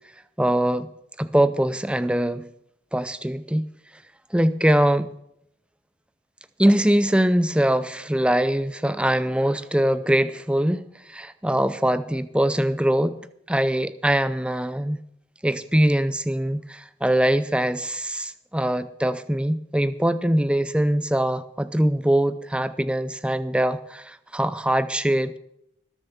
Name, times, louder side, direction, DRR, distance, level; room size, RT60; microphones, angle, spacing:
voice 1, 0.4-0.9 1.2-2.5 2.9-3.6 4.3-5.1 6.6-15.0 15.4-25.4, right 1 dB, 5° right, 14 dB, 0.5 m, -22 dB
20.0 x 7.2 x 7.0 m, 0.77 s
head